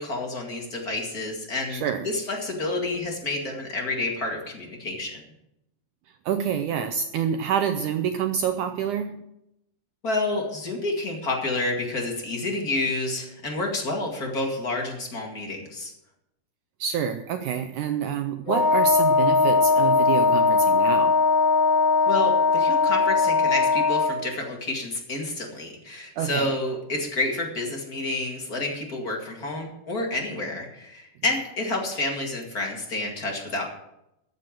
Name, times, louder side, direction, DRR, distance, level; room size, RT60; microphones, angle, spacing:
voice 1, 0.0-5.2 10.0-15.9 22.1-33.7, left 2 dB, 30° left, 1 dB, 2.0 m, -29 dB
voice 2, 1.7-2.1 6.3-9.2 16.8-21.2 26.2-26.5, right 8 dB, 85° right, 8 dB, 1.8 m, -27 dB
Wind instrument woodwind instrument, 18.5-24.2, left 4 dB, 55° left, 3.2 m, -20 dB
14.0 x 6.8 x 7.6 m, 0.83 s
omnidirectional pair, 4.4 m